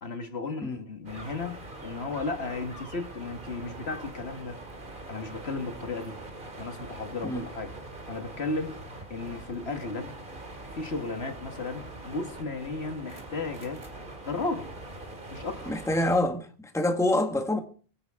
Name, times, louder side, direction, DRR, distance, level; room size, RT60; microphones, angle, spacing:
voice 1, 0.0-4.6 5.1-6.2 6.6-7.7 8.1-8.8 9.1-10.1 10.7-13.8 14.3-14.7 15.3-15.7, left 3 dB, 65° left, 1.9 m, -34 dB
sound 1, 1.0-16.2, right 2 dB, 45° right, 2.5 m, -43 dB
voice 2, 15.7-17.6, left 1 dB, 5° left, 1.4 m, -26 dB
23.5 x 10.5 x 3.6 m
omnidirectional pair, 1.2 m